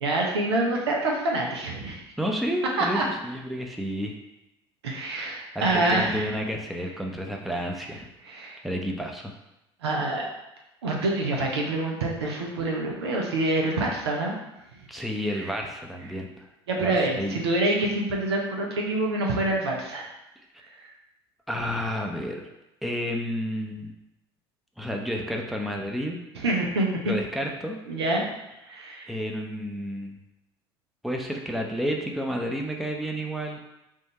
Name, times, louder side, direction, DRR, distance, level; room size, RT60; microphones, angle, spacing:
voice 1, 0.0-2.0 2.9-3.0 4.8-6.3 8.2-8.6 9.8-10.3 10.8-14.3 16.7-20.1 20.8-20.9 26.4-27.1 27.9-28.2 28.6-29.1, right 2 dB, 85° right, -1 dB, 0.8 m, -26 dB
voice 2, 2.2-4.2 5.5-8.1 8.6-9.3 14.9-16.3 16.8-17.4 21.5-22.4 22.8-23.9 24.8-26.2 27.1-27.8 29.1-30.2 31.0-33.6, equal, ahead, 1 dB, 0.7 m, -30 dB
3.6 x 2.6 x 4.2 m, 0.91 s
hypercardioid pair, 70°, 14 cm